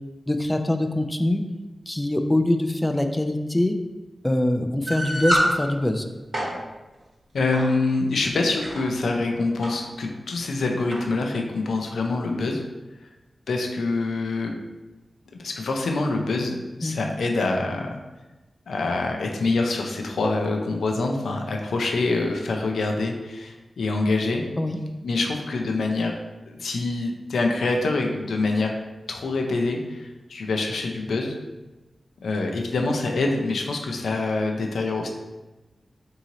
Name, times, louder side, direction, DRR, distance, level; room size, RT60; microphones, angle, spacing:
voice 1, 0.3-1.4 1.9-3.7 4.2-6.1 16.8-16.9 24.6-24.8, left 1 dB, 15° left, 6 dB, 0.3 m, -23 dB
sound 1, 4.9-5.5 6.1-6.5 7.5-7.7 8.4-8.8 9.6-9.7 10.0-10.1 10.9-11.1, equal, 65° right, 1.3 m, -25 dB
voice 2, 7.3-12.6 13.5-14.5 15.3-18.0 18.7-24.4 25.0-26.1 26.5-28.8 29.1-31.3 32.2-35.1, left 3 dB, 90° left, 2 dB, 0.4 m, -25 dB
3.0 x 2.7 x 3.7 m, 1.1 s
cardioid pair, 45°, 0 cm